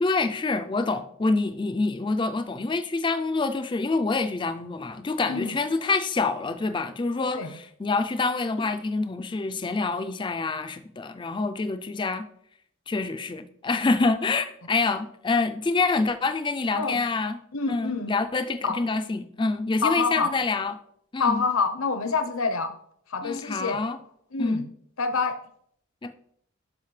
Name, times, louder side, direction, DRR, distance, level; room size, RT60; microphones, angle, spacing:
voice 1, 0.0-12.3 12.9-17.4 17.7-20.7 21.1-21.4 23.2-24.0 24.4-24.6 26.0-26.1, left 3 dB, 20° left, 0.4 m, -26 dB
voice 2, 17.5-18.1 18.6-18.8 19.8-20.3 21.2-22.7 23.1-23.8 24.3-24.6 25.0-25.4, left 4 dB, 70° left, 0.8 m, -26 dB
11.5 x 5.0 x 3.2 m
head